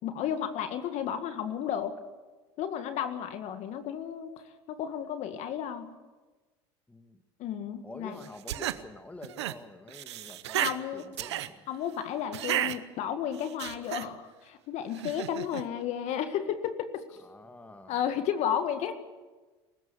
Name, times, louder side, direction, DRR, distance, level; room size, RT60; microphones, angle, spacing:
voice 1, 0.0-2.0 2.6-4.3 4.7-6.0 7.4-8.2 10.5-11.1 11.7-17.0 17.9-18.9, left 9 dB, 55° left, 8 dB, 1.9 m, -33 dB
voice 2, 6.9-7.2 7.8-11.7 17.2-18.1, left 2 dB, 10° left, 7 dB, 2.2 m, -48 dB
sound 1, 8.2-8.8 9.2-9.5 9.9-10.8 11.1-11.5 12.3-12.8 13.3-14.1 14.9-15.6, right 13 dB, 90° right, 0.9 m, -32 dB
23.0 x 14.0 x 8.5 m, 1.3 s
hypercardioid pair, 90°, 14 cm